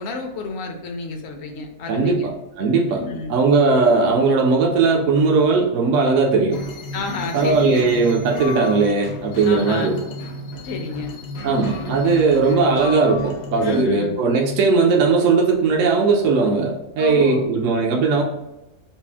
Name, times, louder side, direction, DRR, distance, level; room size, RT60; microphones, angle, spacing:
voice 1, 0.0-2.3 2.9-3.4 6.9-7.9 9.5-10.0 10.6-11.1 13.6-14.1 17.0-17.5, left 3 dB, 60° left, 3 dB, 0.8 m, -29 dB
voice 2, 1.9-3.0 3.3-6.6 7.3-10.0 11.4-18.2, right 4 dB, 65° right, 0 dB, 0.8 m, -18 dB
sound 1, 6.5-13.8, left 1 dB, 85° left, 1.3 m, -33 dB
4.2 x 2.0 x 3.4 m, 0.96 s
omnidirectional pair, 1.6 m